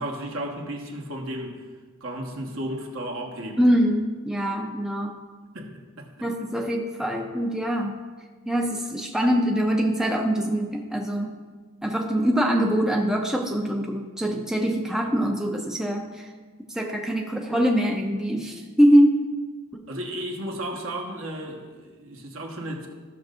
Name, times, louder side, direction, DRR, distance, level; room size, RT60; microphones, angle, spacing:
voice 1, 0.0-1.6 2.0-3.6 5.5-6.1 19.9-22.9, right 1 dB, 65° right, 0 dB, 1.4 m, -34 dB
voice 2, 3.6-5.2 6.2-8.0 8.5-11.4 11.8-16.3 16.7-19.3 19.7-19.9, equal, 5° right, 1 dB, 0.5 m, -23 dB
15.0 x 6.5 x 2.5 m, 1.4 s
head